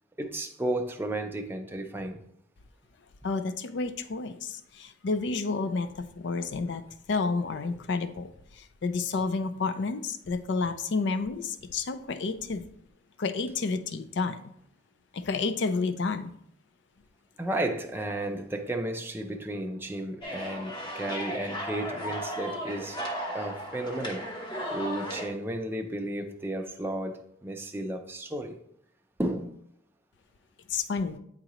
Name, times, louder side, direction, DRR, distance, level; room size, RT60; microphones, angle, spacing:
voice 1, 0.2-2.2 17.4-23.0 23.3-24.2 24.7-28.6 29.2-29.5, right 1 dB, 10° right, 3 dB, 0.5 m, -33 dB
voice 2, 3.2-6.8 7.1-8.3 8.8-12.7 13.2-14.4 15.1-16.3 30.7-31.2, left 4 dB, 65° left, 11 dB, 0.4 m, -30 dB
sound 1, 20.2-25.3, equal, 25° left, 0.9 m, -35 dB
8.8 x 3.8 x 3.0 m, 0.71 s
head